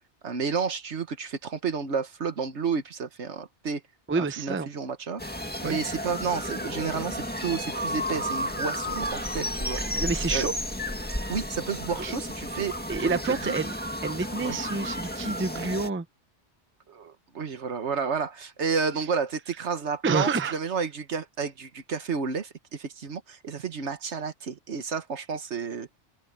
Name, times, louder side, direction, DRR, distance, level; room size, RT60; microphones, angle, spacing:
voice 1, 0.2-3.8 4.2-5.2 5.6-9.8 10.3-10.5 11.3-13.5 14.4-14.6 16.9-25.9, right 5 dB, 75° right, 1.6 m, -31 dB
voice 2, 4.1-4.7 5.6-5.8 9.9-10.5 12.9-13.8 14.0-16.0 20.0-20.6, right 4 dB, 15° right, 0.5 m, -28 dB
sound 1, 5.2-15.9, left 1 dB, 10° left, 1.9 m, -32 dB
omnidirectional pair, 1.2 m